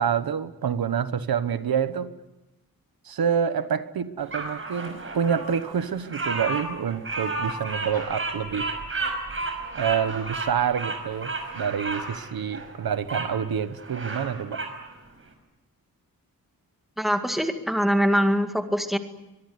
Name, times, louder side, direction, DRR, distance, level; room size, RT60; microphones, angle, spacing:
voice 1, 0.0-2.1 3.0-8.7 9.7-14.6, right 7 dB, 75° right, 12 dB, 1.3 m, -27 dB
Bird vocalization bird call bird song, 4.3-13.3 13.7-14.8, right 3 dB, 35° right, 5.7 m, -32 dB
voice 2, 17.0-19.0, equal, ahead, 5 dB, 2.0 m, -23 dB
23.5 x 23.0 x 9.6 m, 0.98 s
wide cardioid pair, 180°, 36 cm